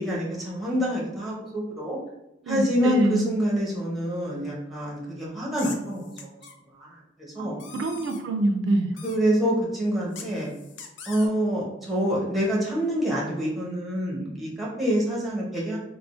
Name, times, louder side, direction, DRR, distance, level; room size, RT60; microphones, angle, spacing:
voice 1, 0.0-2.0 2.5-6.4 6.8-7.6 9.0-10.5 11.1-15.8, equal, ahead, -5 dB, 0.8 m, -26 dB
voice 2, 2.4-3.3 7.4-8.9, right 2 dB, 85° right, 6 dB, 0.3 m, -26 dB
sound 1, 5.5-6.5 7.6-8.2 9.0-9.2 10.1-11.3, left 6 dB, 85° left, 0.4 m, -42 dB
3.4 x 2.0 x 2.4 m, 0.85 s
head